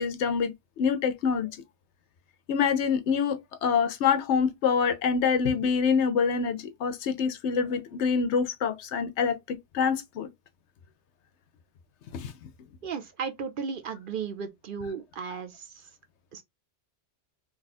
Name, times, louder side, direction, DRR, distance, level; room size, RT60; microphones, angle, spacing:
voice 1, 0.0-1.5 2.5-10.3 12.1-12.3, left 6 dB, 85° left, 1.0 m, -26 dB
voice 2, 12.8-15.6 16.3-16.4, right 6 dB, 60° right, 0.7 m, -35 dB
2.9 x 2.4 x 4.1 m
omnidirectional pair, 1.1 m